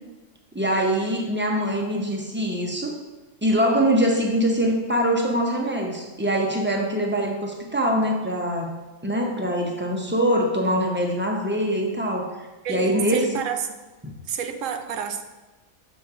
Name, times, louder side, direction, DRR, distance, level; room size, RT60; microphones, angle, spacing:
voice 1, 0.5-2.9 3.4-8.7 9.0-13.4 14.0-14.1, equal, 15° right, 0 dB, 0.3 m, -23 dB
voice 2, 12.6-13.8 14.2-15.2, right 7 dB, 70° right, 7 dB, 0.9 m, -29 dB
6.8 x 3.1 x 4.8 m, 1.1 s
omnidirectional pair, 1.4 m